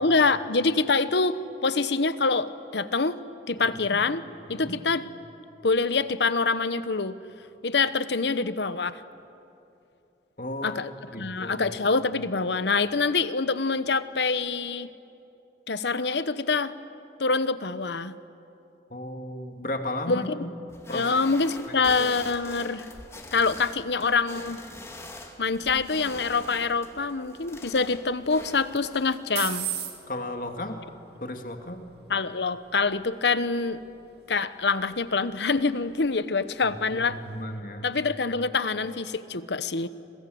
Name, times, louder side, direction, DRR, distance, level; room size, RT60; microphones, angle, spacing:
voice 1, 0.0-3.2 3.5-4.2 4.5-5.0 5.6-7.2 7.6-9.0 10.6-10.9 11.2-14.9 15.7-16.7 17.2-18.2 20.1-20.5 20.9-22.9 23.3-24.6 25.4-29.7 32.1-33.8 34.3-37.2 37.8-39.9, left 4 dB, 85° left, 14 dB, 1.0 m, -25 dB
voice 2, 10.4-10.8 11.1-11.7 18.9-20.5 20.9-21.1 21.7-21.8 30.1-30.8 31.2-31.8 36.6-37.8, left 1 dB, 50° left, 5 dB, 2.2 m, -34 dB
sound 1, 20.7-29.2, left 2 dB, 15° left, 2.2 m, -44 dB
sound 2, 25.5-37.4, right 11 dB, 70° right, 2.7 m, -43 dB
28.5 x 26.0 x 7.8 m, 2.7 s
head